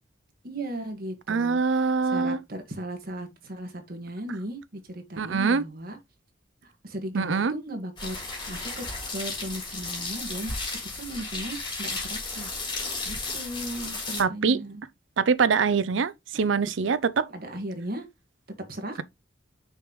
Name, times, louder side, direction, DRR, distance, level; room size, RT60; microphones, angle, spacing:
voice 1, 0.4-6.0 6.6-8.2 8.5-10.5 11.0-12.5 13.1-14.8 16.3-16.5 17.3-18.1 18.7-19.0, right 1 dB, 50° right, 1.7 m, -37 dB
voice 2, 1.3-2.4 5.2-5.6 7.1-7.5 14.2-14.6 15.2-17.3, right 5 dB, 75° right, 0.5 m, -24 dB
sound 1, 8.0-14.2, left 3 dB, 25° left, 3.5 m, -34 dB
6.4 x 5.3 x 3.1 m
head